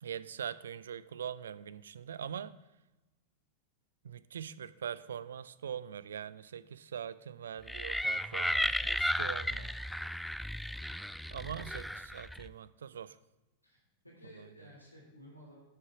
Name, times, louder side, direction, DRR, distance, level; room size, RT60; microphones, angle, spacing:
voice 1, 0.0-2.6 4.0-9.7 11.3-13.2 14.4-14.5, right 8 dB, 65° right, 16 dB, 0.4 m, -42 dB
sound 1, 7.7-12.5, equal, ahead, 0.3 m, -34 dB
voice 2, 13.6-15.6, left 1 dB, 90° left, -3 dB, 3.8 m, -55 dB
12.0 x 6.9 x 4.8 m, 1.0 s
figure-of-eight pair, 90°, 0 cm